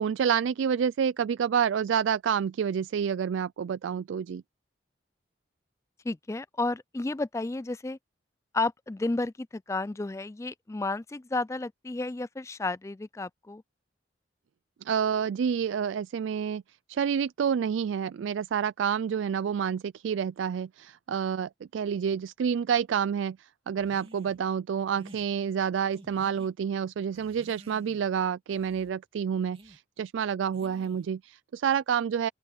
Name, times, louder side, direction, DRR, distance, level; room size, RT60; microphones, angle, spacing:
voice 1, 0.0-4.4 14.8-16.6 16.9-32.3, right 7 dB, 85° right, 0.3 m, -28 dB
voice 2, 6.0-8.0 8.5-13.6, left 2 dB, 15° left, 0.3 m, -32 dB
sound 1, 23.8-24.4 24.9-25.3 25.9-26.5 27.1-28.1 28.5-28.9 29.5-29.8 30.5-31.1, right 1 dB, 30° right, 2.8 m, -52 dB
open air
head